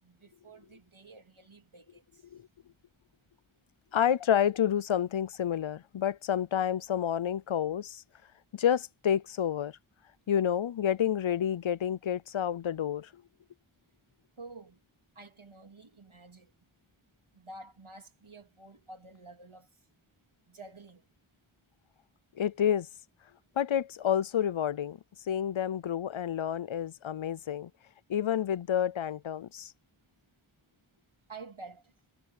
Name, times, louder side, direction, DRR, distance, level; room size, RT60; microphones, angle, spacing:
voice 1, 0.0-2.3 14.4-14.8 15.1-16.5 17.3-19.8 20.5-21.1 27.2-27.3 31.3-31.9, right 3 dB, 75° right, 3.4 m, -50 dB
voice 2, 3.9-8.0 8.5-9.8 10.3-13.2 22.4-22.9 23.6-25.0 25.2-27.7 28.1-29.7, left 9 dB, 70° left, 0.6 m, -29 dB
wide cardioid pair, 45°, 49 cm